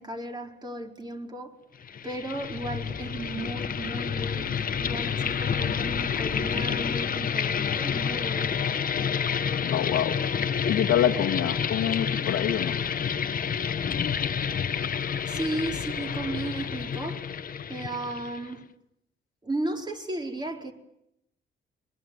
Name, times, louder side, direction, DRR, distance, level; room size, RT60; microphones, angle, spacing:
voice 1, 0.0-1.6 2.0-8.6 15.3-17.3 17.7-18.6 19.4-20.7, right 2 dB, 20° right, 4.3 m, -35 dB
sound 1, 1.8-18.5, left 7 dB, 45° left, 1.2 m, -29 dB
voice 2, 9.6-10.1 10.7-12.8, left 10 dB, 85° left, 1.6 m, -26 dB
23.5 x 21.5 x 9.4 m
cardioid pair, 90°, 20 cm